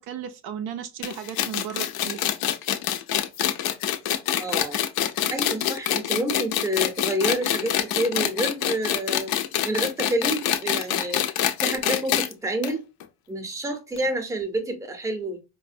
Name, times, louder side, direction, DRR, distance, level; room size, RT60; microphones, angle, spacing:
voice 1, 0.0-2.2, right 9 dB, 65° right, 0.5 m, -35 dB
Two computer speakers rubbing together, 1.0-12.3 12.6-12.7 13.0-13.1 14.0-14.1, left 11 dB, 60° left, 0.5 m, -25 dB
voice 2, 4.4-4.8 5.3-9.3 9.6-11.2 11.6-12.8 13.3-15.4, right 1 dB, 10° right, 0.6 m, -28 dB
4.0 x 2.1 x 2.5 m
cardioid pair, 145°, 41 cm